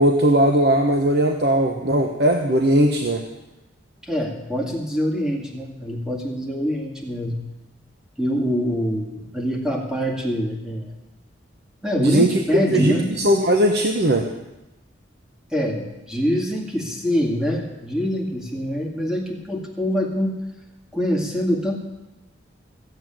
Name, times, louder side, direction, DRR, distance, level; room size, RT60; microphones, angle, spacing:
voice 1, 0.0-3.2 12.0-14.3, right 1 dB, 55° right, 4 dB, 1.1 m, -19 dB
voice 2, 4.0-7.4 8.2-10.9 11.8-13.2 15.5-20.4 20.9-21.8, equal, 5° right, 0 dB, 2.1 m, -24 dB
15.0 x 7.9 x 9.1 m, 0.98 s
head